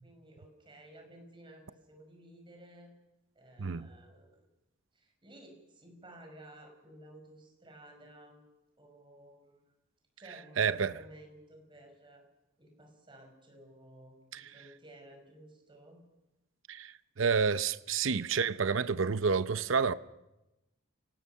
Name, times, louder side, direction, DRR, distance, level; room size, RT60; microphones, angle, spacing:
voice 1, 0.0-2.9 3.4-4.5 4.9-8.4 8.8-9.8 10.2-12.2 12.6-16.0, right 1 dB, 25° right, 5.5 m, -55 dB
voice 2, 10.6-11.0 14.3-14.5 16.7-19.9, right 5 dB, 70° right, 0.7 m, -29 dB
29.5 x 19.0 x 5.7 m
head